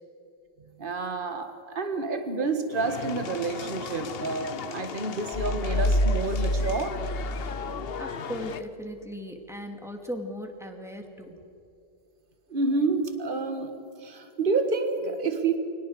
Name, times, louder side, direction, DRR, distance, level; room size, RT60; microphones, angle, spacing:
voice 1, 0.8-7.0 12.5-13.7 14.0-15.6, right 3 dB, 55° right, 6 dB, 1.8 m, -29 dB
sound 1, 2.7-8.6, left 7 dB, 70° left, 1.0 m, -37 dB
sound 2, 5.3-8.2, left 1 dB, 40° left, 1.4 m, -27 dB
voice 2, 8.0-11.4, equal, 5° right, 3 dB, 2.3 m, -38 dB
29.0 x 24.0 x 4.8 m, 2.6 s
omnidirectional pair, 1.0 m